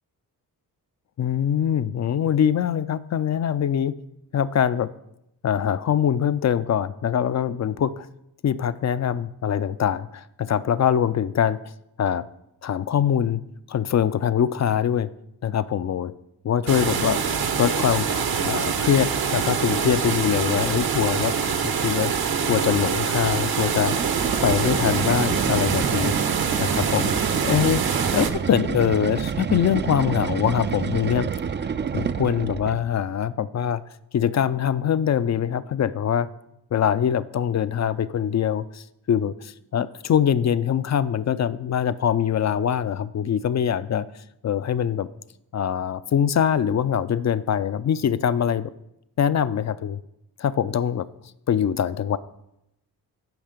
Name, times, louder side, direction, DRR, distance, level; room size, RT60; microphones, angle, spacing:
voice 1, 1.2-3.9 4.3-4.9 5.4-8.1 8.4-11.6 12.0-12.2 12.6-13.4 13.7-15.1 15.4-16.1 16.4-18.1 18.4-21.3 21.6-22.1 22.5-24.0 24.4-26.1 26.6-27.1 27.4-27.8 28.1-31.3 31.9-33.8 34.1-36.3 36.7-44.1 44.4-45.1 45.5-48.7 49.2-50.0 50.4-51.1 51.5-52.2, left 9 dB, 40° left, 15 dB, 0.4 m, -23 dB
sound 1, 16.7-28.3, right 6 dB, 60° right, 1.0 m, -25 dB
sound 2, 23.8-32.9, right 7 dB, 30° right, 0.4 m, -28 dB
9.2 x 5.5 x 5.1 m, 0.82 s
supercardioid pair, 50°, 41 cm